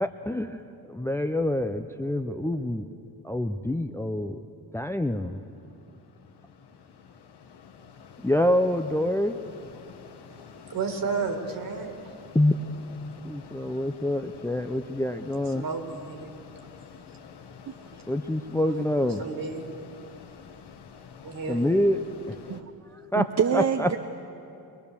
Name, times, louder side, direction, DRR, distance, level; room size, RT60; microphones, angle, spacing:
voice 1, 0.0-2.9 3.2-4.4 4.7-5.4 8.2-9.4 12.3-12.5 13.2-15.7 18.1-19.2 21.5-22.0 22.3-22.6 23.1-23.3 23.5-23.9, left 1 dB, 5° left, 7 dB, 0.5 m, -26 dB
Mechanisms, 4.6-22.6, left 7 dB, 85° left, 1.2 m, -49 dB
voice 2, 10.3-12.1 15.5-16.4 19.2-19.7 21.2-21.8, right 4 dB, 60° right, 5 dB, 2.1 m, -33 dB
voice 3, 17.7-18.0 22.5-22.6 23.2-24.0, right 7 dB, 45° right, 6 dB, 0.7 m, -26 dB
22.0 x 21.5 x 7.0 m, 2.7 s
wide cardioid pair, 130°, 39 cm